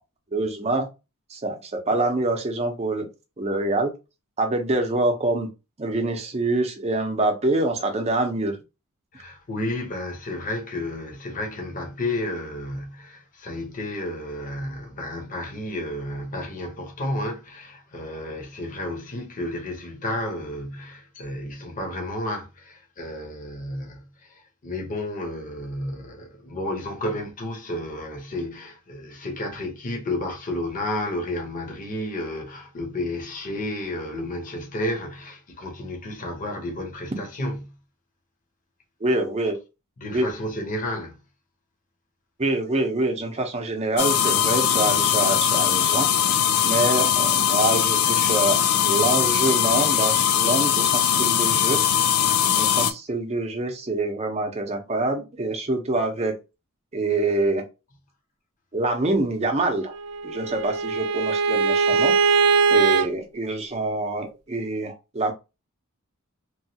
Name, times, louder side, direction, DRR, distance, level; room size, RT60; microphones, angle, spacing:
voice 1, 0.3-0.9 1.3-3.1 3.4-3.9 4.4-5.5 5.8-8.6 39.0-39.6 40.1-40.3 42.4-46.1 46.6-51.8 52.6-56.3 56.9-57.6 58.7-59.9 60.2-62.1 62.7-65.3, right 2 dB, 30° right, 0.7 m, -25 dB
voice 2, 9.1-37.7 40.0-41.2, left 1 dB, 35° left, 0.8 m, -32 dB
sound 1, 44.0-52.9, left 9 dB, 75° left, 0.4 m, -21 dB
Bowed string instrument, 59.9-63.1, right 5 dB, 85° right, 0.4 m, -21 dB
3.0 x 2.3 x 2.7 m
head